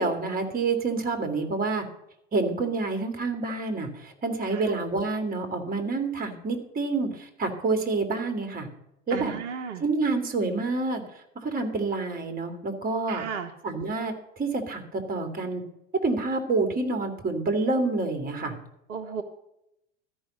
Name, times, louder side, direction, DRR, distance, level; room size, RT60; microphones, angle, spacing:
voice 1, 0.0-1.9 2.3-8.7 9.1-9.3 9.8-11.0 11.4-13.2 13.6-14.1 14.4-15.6 16.0-18.6, right 3 dB, 25° right, 6 dB, 2.3 m, -28 dB
voice 2, 9.1-9.8 13.1-13.5 18.9-19.2, right 7 dB, 75° right, 5 dB, 1.2 m, -34 dB
13.5 x 5.5 x 7.6 m, 0.84 s
hypercardioid pair, 80°, 36 cm